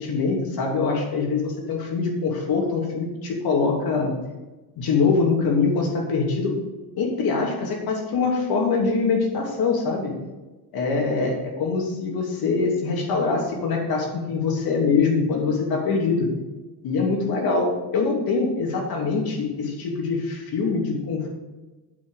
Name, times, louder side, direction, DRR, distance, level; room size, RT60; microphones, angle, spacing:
voice 1, 0.0-4.1 4.8-6.6 7.0-10.1 10.7-16.3 16.8-21.3, left 4 dB, 60° left, 0 dB, 2.9 m, -23 dB
8.7 x 8.0 x 4.9 m, 1.2 s
cardioid pair, 170°, 42 cm